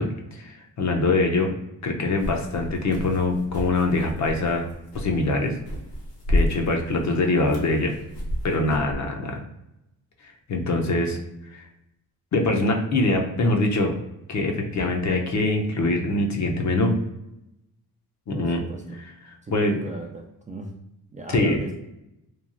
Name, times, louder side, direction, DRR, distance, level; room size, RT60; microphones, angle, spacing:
voice 1, 0.0-1.5 1.8-4.7 4.9-5.5 6.3-7.9 8.4-9.4 10.5-11.2 11.5-11.6 12.3-13.9 14.3-17.0 18.3-18.6 19.3-19.8 21.3-21.6, left 2 dB, 45° left, 3 dB, 0.6 m, -23 dB
sound 1, 2.2-8.9, left 1 dB, 70° left, 1.1 m, -31 dB
voice 2, 18.3-19.0 19.4-20.7 21.1-21.8, right 2 dB, 20° right, 1 dB, 0.3 m, -37 dB
3.1 x 2.3 x 2.5 m, 0.87 s
cardioid pair, 70°, 38 cm